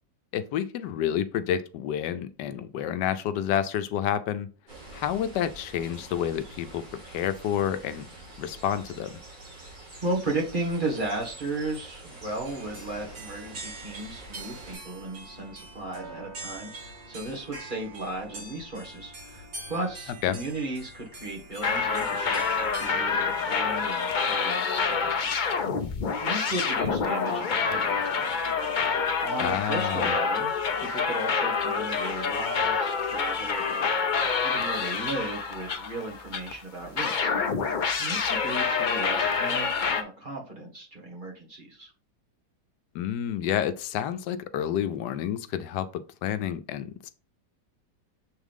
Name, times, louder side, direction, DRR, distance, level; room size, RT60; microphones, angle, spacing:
voice 1, 0.3-4.5 4.9-8.1 8.4-9.1 20.2-20.4 29.4-30.1 42.9-47.1, left 10 dB, 85° left, 1.2 m, -29 dB
sound 1, 4.7-14.7, right 2 dB, 85° right, 3.7 m, -46 dB
voice 2, 10.0-25.4 26.2-28.4 29.2-33.9 34.4-37.3 38.0-41.9, right 2 dB, 30° right, 1.7 m, -35 dB
sound 2, 12.4-22.9, right 2 dB, 65° right, 2.2 m, -44 dB
sound 3, 21.6-36.5 37.0-40.0, left 5 dB, 60° left, 0.5 m, -27 dB
7.2 x 3.6 x 3.6 m
omnidirectional pair, 1.8 m